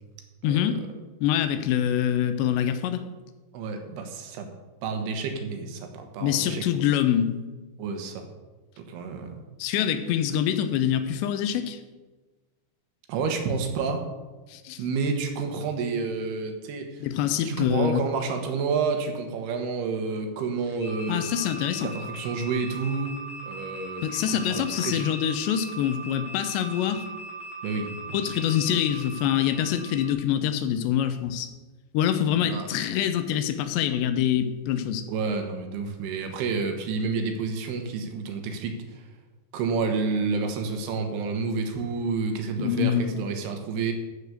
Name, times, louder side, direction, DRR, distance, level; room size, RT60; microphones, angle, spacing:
voice 1, 0.4-0.8 1.2-3.0 6.2-7.4 9.6-11.8 14.5-14.8 17.0-18.0 21.1-21.9 24.0-27.1 28.1-31.5 31.9-35.1 42.6-43.2, left 10 dB, 90° left, 9 dB, 3.0 m, -25 dB
voice 2, 3.5-4.5 4.8-6.6 7.8-8.2 8.8-9.3 13.1-14.1 14.8-17.0 17.4-21.2 21.8-25.1 27.6-28.4 32.3-32.7 35.1-39.0 39.5-43.9, right 4 dB, 75° right, 5 dB, 3.1 m, -29 dB
sound 1, 20.8-30.1, right 2 dB, 40° left, 4.0 m, -40 dB
14.5 x 5.1 x 6.7 m, 1.2 s
omnidirectional pair, 5.0 m